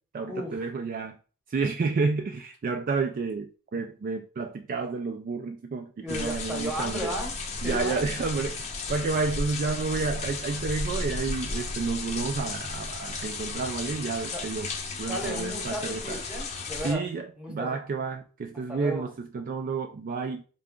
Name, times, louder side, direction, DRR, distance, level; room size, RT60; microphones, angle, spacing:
voice 1, 0.1-1.2 1.5-7.1 7.6-14.7 15.0-16.2 16.8-20.4, right 4 dB, 40° right, 0.3 m, -30 dB
voice 2, 6.0-8.0 14.3-14.4 15.1-17.0 17.4-17.8 18.7-19.1, equal, 5° right, 0.9 m, -34 dB
sound 1, 6.1-16.9, left 3 dB, 30° left, 0.6 m, -34 dB
3.7 x 2.3 x 3.6 m
head